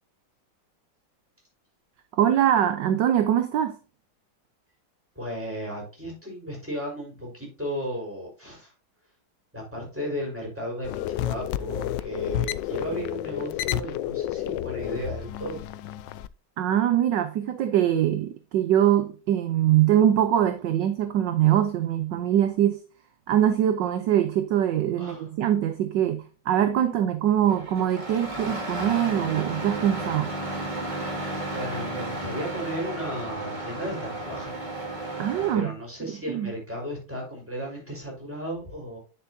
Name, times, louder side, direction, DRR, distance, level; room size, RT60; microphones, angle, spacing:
voice 1, 2.1-3.8 16.6-22.8 23.3-30.3 35.2-35.7 36.1-36.5, right 11 dB, 70° right, 1.3 m, -23 dB
voice 2, 5.1-8.7 9.5-15.6 25.0-25.3 31.5-34.6 35.5-39.0, equal, 5° right, 4.5 m, -35 dB
sound 1, 10.8-16.3, left 13 dB, 75° left, 1.1 m, -31 dB
Engine starting, 27.5-35.6, right 2 dB, 20° right, 2.2 m, -33 dB
10.0 x 7.1 x 2.7 m
omnidirectional pair, 2.2 m